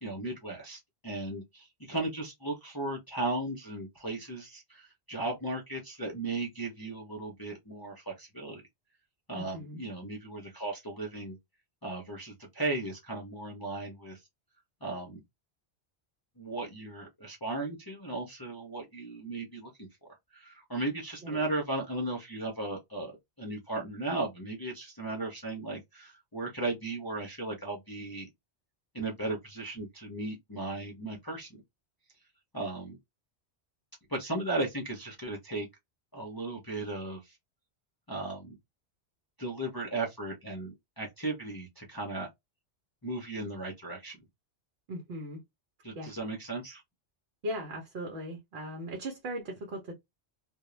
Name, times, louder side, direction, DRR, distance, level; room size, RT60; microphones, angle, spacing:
voice 1, 0.0-8.6 9.3-11.4 11.8-14.2 14.8-15.2 16.4-19.9 20.3-28.3 28.9-31.5 32.5-33.0 34.1-35.7 36.1-37.4 38.1-38.5 39.4-42.3 43.0-44.2 45.8-46.8, right 2 dB, 30° left, 0.5 m, -36 dB
voice 2, 9.3-9.8 21.2-21.4 44.9-45.4 45.9-46.1 47.4-49.9, equal, 65° right, 1.0 m, -38 dB
2.4 x 2.1 x 3.0 m
omnidirectional pair, 1.1 m